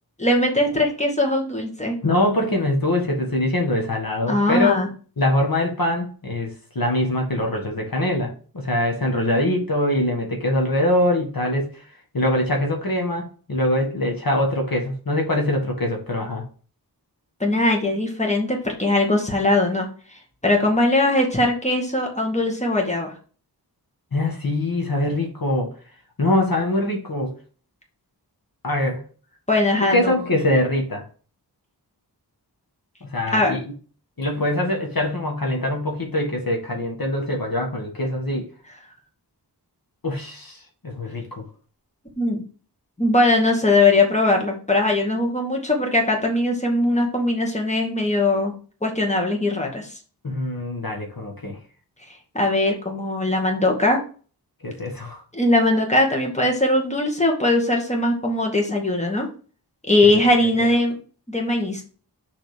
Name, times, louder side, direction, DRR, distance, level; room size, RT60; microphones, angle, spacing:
voice 1, 0.2-2.0 4.3-4.9 17.4-19.9 20.4-23.1 29.5-30.3 33.3-33.6 42.2-42.4 43.0-48.5 48.8-49.9 52.3-54.0 55.3-59.3 59.9-61.0 61.3-61.8, left 2 dB, 15° left, 2.1 m, -20 dB
voice 2, 2.0-4.8 5.2-11.7 12.1-16.4 24.1-25.7 26.2-27.3 28.6-29.0 29.8-31.0 33.0-33.6 34.2-38.5 40.0-40.6 40.8-41.4 50.2-51.6 54.6-55.2 60.6-60.7, left 1 dB, 55° left, 1.7 m, -23 dB
6.6 x 4.1 x 5.1 m
wide cardioid pair, 70°, 40 cm